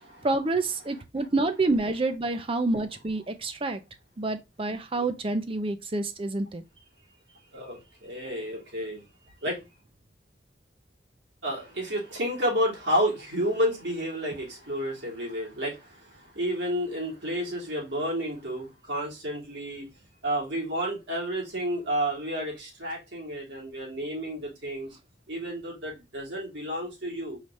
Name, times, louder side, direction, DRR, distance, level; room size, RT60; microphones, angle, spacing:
voice 1, 0.2-3.8 4.2-6.6, right 2 dB, 30° right, 0.5 m, -28 dB
voice 2, 7.3-9.0 9.4-9.7 11.4-19.9 20.2-24.9 25.3-27.4, equal, 80° right, 2.7 m, -31 dB
4.9 x 2.8 x 3.1 m
head